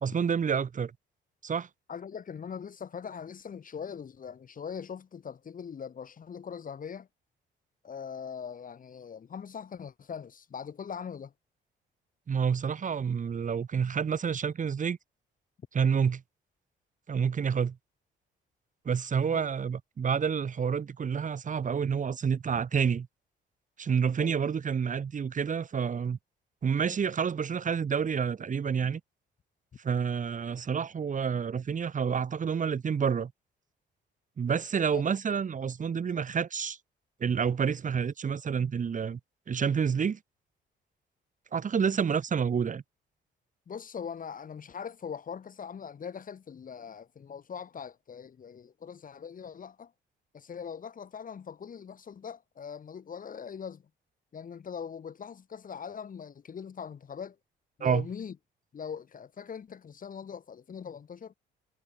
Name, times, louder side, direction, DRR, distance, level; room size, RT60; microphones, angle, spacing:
voice 1, 0.0-0.9 1.4-1.7 12.3-15.0 15.7-16.2 17.1-17.8 18.8-23.1 23.8-26.2 26.6-29.0 29.8-33.3 34.4-36.8 37.2-39.2 39.5-40.2 41.5-42.8 57.8-58.0, right 6 dB, 40° right, 1.5 m, -28 dB
voice 2, 1.9-7.1 7.8-11.3 19.2-19.4 24.2-24.4 34.9-35.0 43.7-49.9 50.3-53.9 54.3-57.4 57.8-58.4 58.7-61.3, left 7 dB, 45° left, 1.6 m, -41 dB
cardioid pair, 90°, 20 cm